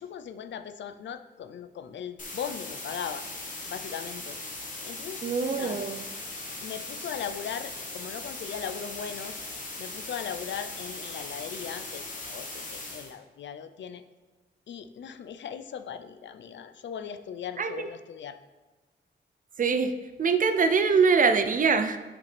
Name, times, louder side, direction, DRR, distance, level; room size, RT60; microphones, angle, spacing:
voice 1, 0.0-3.2 3.7-4.4 4.8-5.2 5.5-5.8 6.6-9.4 9.8-14.0 14.7-18.4, left 8 dB, 80° left, 10 dB, 0.4 m, -38 dB
sound 1, 2.2-13.1, left 2 dB, 45° left, 1.3 m, -39 dB
voice 2, 5.2-6.0 17.6-17.9 19.6-19.9 20.2-22.0, right 5 dB, 45° right, 9 dB, 0.5 m, -23 dB
8.2 x 5.1 x 3.3 m, 1.2 s
wide cardioid pair, 135°, 18 cm